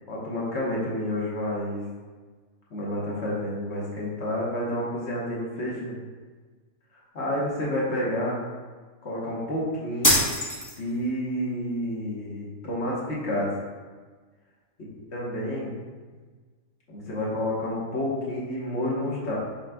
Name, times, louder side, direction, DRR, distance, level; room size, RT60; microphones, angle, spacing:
voice 1, 0.1-1.8 2.7-6.0 7.1-8.4 9.0-10.3 10.8-13.5 14.9-15.7 16.9-19.4, left 1 dB, 55° left, -5 dB, 1.3 m, -29 dB
sound 1, 10.0-11.1, left 1 dB, 15° left, 0.8 m, -23 dB
5.9 x 4.0 x 2.3 m, 1.4 s
omnidirectional pair, 1.4 m